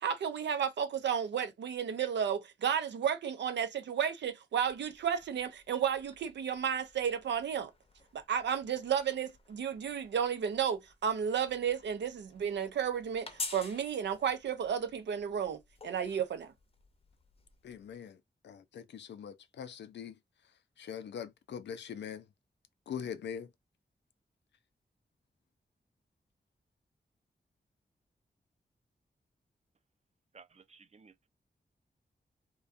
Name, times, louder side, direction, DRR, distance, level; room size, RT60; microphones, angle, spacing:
voice 1, 0.0-7.7 8.1-16.5, right 8 dB, 90° right, 0.5 m, -33 dB
sound 1, 4.5-18.0, left 3 dB, 35° left, 0.6 m, -50 dB
voice 2, 17.6-18.2 18.4-20.2 20.8-22.2 22.9-23.5, left 8 dB, 85° left, 0.4 m, -42 dB
voice 3, 30.3-31.3, right 5 dB, 40° right, 0.5 m, -57 dB
2.4 x 2.2 x 2.4 m
cardioid pair, 55°, 18 cm